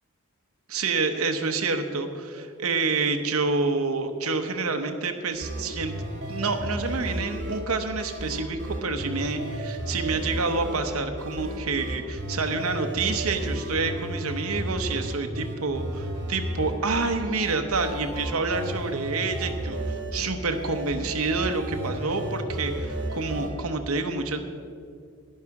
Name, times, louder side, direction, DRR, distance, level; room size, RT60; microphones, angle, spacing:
voice 1, 0.7-5.9 6.3-19.8 20.1-24.4, right 3 dB, 70° right, 6 dB, 0.9 m, -28 dB
sound 1, 5.3-23.5, right 1 dB, 50° right, 2.3 m, -33 dB
11.0 x 10.5 x 4.8 m, 2.3 s
head